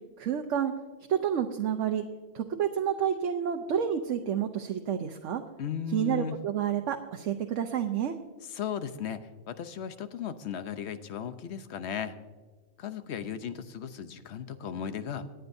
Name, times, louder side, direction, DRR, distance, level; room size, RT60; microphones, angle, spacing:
voice 1, 0.2-0.7 1.1-2.0 2.3-5.4 5.9-8.1, right 9 dB, 90° right, 5 dB, 1.1 m, -29 dB
voice 2, 5.6-6.4 8.5-9.2 9.5-12.1 12.8-15.3, left 8 dB, 70° left, 11 dB, 1.0 m, -36 dB
24.5 x 9.1 x 2.6 m, 1.4 s
omnidirectional pair, 1.2 m